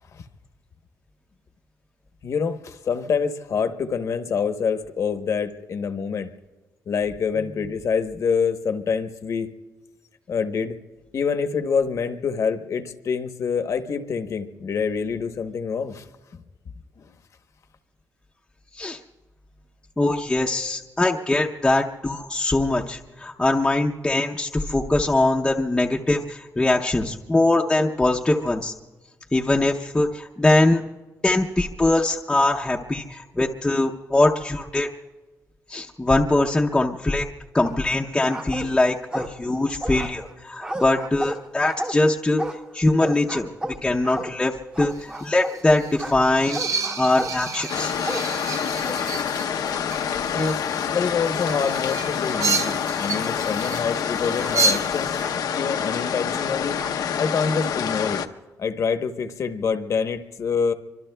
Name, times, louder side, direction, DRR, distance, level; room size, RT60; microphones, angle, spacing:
voice 1, 2.2-6.3 6.9-9.5 10.3-10.8 11.1-16.0 16.3-16.4 17.0-17.1 50.3-50.6 50.9-55.1 55.5-56.8 57.2-58.2 58.6-60.7, left 6 dB, 50° left, 8 dB, 0.9 m, -26 dB
voice 2, 20.0-28.7 29.3-30.8 31.2-34.9 35.7-37.3 37.5-42.4 42.7-47.9, left 2 dB, 10° left, -1 dB, 0.6 m, -22 dB
sound 1, 37.7-38.0 38.3-39.5 39.8-45.6 46.0-49.4 49.6-50.5 51.4-51.7 52.3-54.6 55.2-57.0, right 1 dB, 15° right, 0.8 m, -35 dB
sound 2, 44.9-55.2, right 3 dB, 55° right, 0.6 m, -30 dB
sound 3, 47.7-58.3, left 8 dB, 80° left, 0.7 m, -27 dB
26.0 x 24.5 x 2.2 m, 1.2 s
wide cardioid pair, 160°, 6 cm